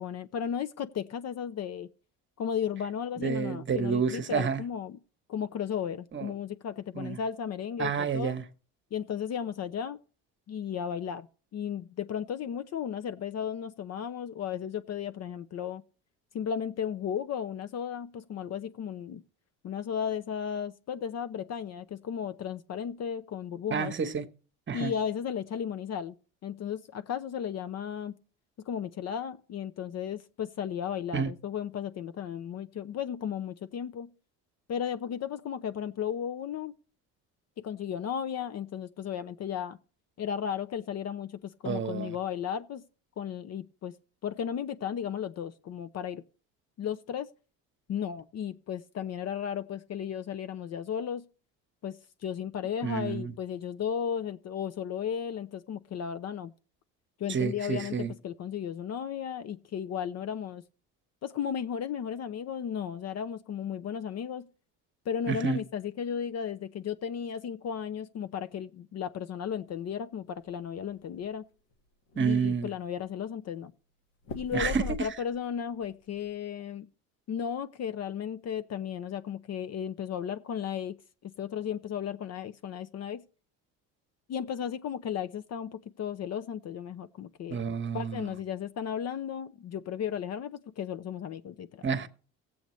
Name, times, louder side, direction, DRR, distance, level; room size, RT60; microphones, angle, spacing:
voice 1, 0.0-1.9 2.4-5.0 5.3-8.4 8.9-10.0 10.5-11.3 11.5-15.8 16.3-19.2 19.6-23.9 24.7-26.2 26.4-28.1 28.7-34.1 34.7-36.7 37.6-39.8 40.2-42.8 43.2-43.9 44.2-46.2 46.8-47.3 47.9-51.2 51.8-56.5 57.2-60.6 61.2-64.5 65.0-71.4 72.1-73.7 74.3-76.9 77.3-81.0 81.2-83.2 84.3-87.6 87.9-91.9, left 8 dB, 45° left, 0.7 m, -34 dB
voice 2, 3.2-4.6 6.1-6.3 6.9-7.2 7.8-8.4 23.7-24.2 24.7-24.9 31.1-31.3 41.6-42.1 52.8-53.3 57.3-58.1 65.3-65.6 72.2-72.7 74.5-74.8 87.5-88.3 91.8-92.1, right 6 dB, 35° right, 1.1 m, -29 dB
sound 1, 70.4-71.3 71.7-71.8 72.1-72.8 74.2-75.5 75.8-76.3, left 1 dB, 75° left, 1.8 m, -40 dB
16.5 x 7.9 x 3.1 m
supercardioid pair, 85°, 35 cm